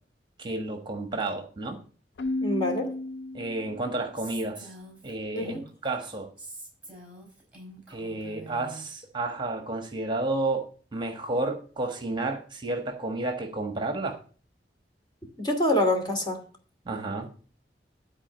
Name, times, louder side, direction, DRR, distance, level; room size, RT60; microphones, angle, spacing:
voice 1, 0.4-1.8 3.3-4.7 5.0-5.6 5.8-6.3 7.9-14.2 16.8-17.3, right 2 dB, 25° right, 5 dB, 1.4 m, -31 dB
Keyboard (musical), 2.2-4.0, left 2 dB, 70° left, 0.4 m, -33 dB
voice 2, 2.4-2.9 5.3-5.6 15.4-16.4, left 1 dB, 25° left, 2 dB, 2.6 m, -26 dB
Female speech woman speaking, 4.2-5.9 6.4-8.9, right 1 dB, 5° right, 5.3 m, -45 dB
13.0 x 4.5 x 7.9 m, 0.41 s
head